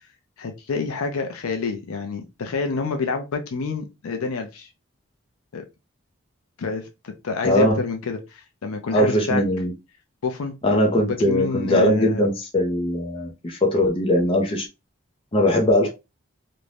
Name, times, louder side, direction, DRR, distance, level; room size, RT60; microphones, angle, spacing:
voice 1, 0.4-4.7 5.5-5.6 6.6-9.4 10.2-10.5 11.2-12.3, left 4 dB, 85° left, 0.5 m, -28 dB
voice 2, 7.4-7.8 8.9-9.7 10.6-14.6 15.3-15.9, left 1 dB, 25° left, 0.5 m, -20 dB
2.5 x 2.1 x 3.2 m
head